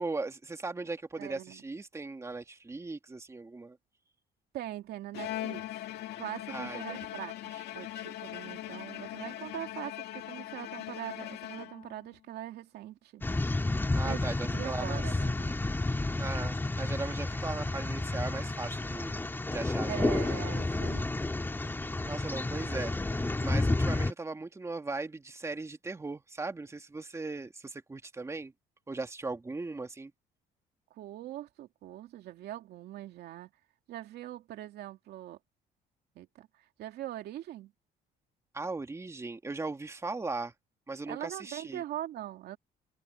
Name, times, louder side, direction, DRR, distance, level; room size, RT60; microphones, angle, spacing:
voice 1, 0.0-3.8 6.5-7.0 13.9-15.0 16.2-19.2 19.5-20.0 21.7-21.8 22.1-28.5 28.9-30.1 38.5-40.5 40.9-41.8, right 3 dB, 15° right, 2.6 m, -38 dB
voice 2, 1.2-1.6 4.5-5.6 6.2-13.2 14.0-15.6 19.9-21.1 30.9-33.5 33.9-35.4 36.2-37.7 41.1-42.6, right 13 dB, 70° right, 2.5 m, -42 dB
Bowed string instrument, 5.1-12.1, left 14 dB, 75° left, 2.1 m, -40 dB
sound 1, 13.2-24.1, left 2 dB, 10° left, 2.2 m, -31 dB
cardioid pair, 110°, 17 cm